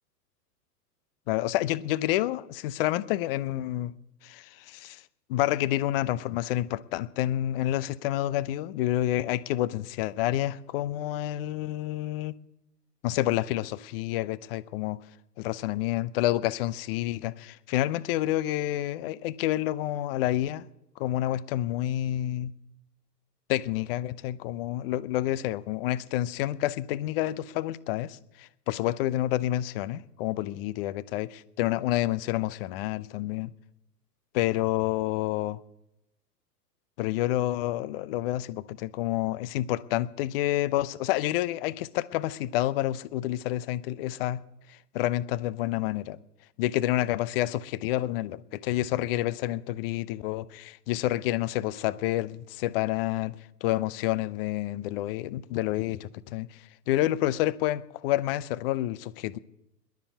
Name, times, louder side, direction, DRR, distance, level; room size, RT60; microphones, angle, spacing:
voice 1, 1.3-3.9 4.2-5.0 5.3-12.3 13.0-15.0 15.4-20.7 21.0-22.5 23.5-33.5 34.3-35.6 37.0-44.4 44.7-46.2 46.6-53.4 53.6-59.4, left 14 dB, 35° left, 0.7 m, -29 dB
21.5 x 7.1 x 8.1 m
figure-of-eight pair, 100°, 49 cm